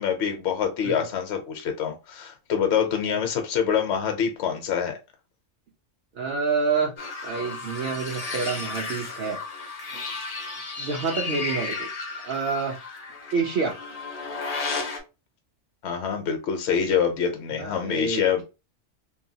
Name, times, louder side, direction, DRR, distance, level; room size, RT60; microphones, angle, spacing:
voice 1, 0.0-5.0 15.8-18.4, left 7 dB, 70° left, 5 dB, 0.9 m, -25 dB
voice 2, 6.1-6.9 7.2-9.4 9.9-10.0 10.8-11.9 12.2-12.8 13.3-13.7 17.6-18.4, right 4 dB, 60° right, 0 dB, 0.7 m, -28 dB
sound 1, 7.0-15.0, left 4 dB, 50° left, 0.5 m, -33 dB
2.8 x 2.2 x 2.6 m, 0.28 s
omnidirectional pair, 1.3 m